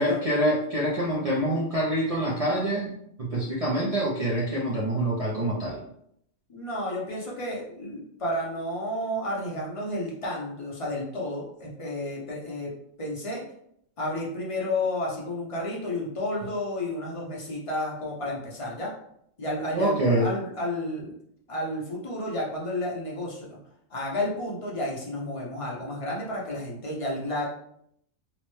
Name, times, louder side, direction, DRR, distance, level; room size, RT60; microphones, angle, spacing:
voice 1, 0.0-5.8 19.7-20.3, right 1 dB, 55° right, -6 dB, 0.4 m, -26 dB
voice 2, 6.5-12.7 13.0-13.4 14.0-18.9 19.4-21.1 21.5-23.6 23.9-27.5, left 1 dB, 40° left, -4 dB, 0.4 m, -31 dB
2.8 x 2.0 x 3.0 m, 0.71 s
omnidirectional pair, 1.3 m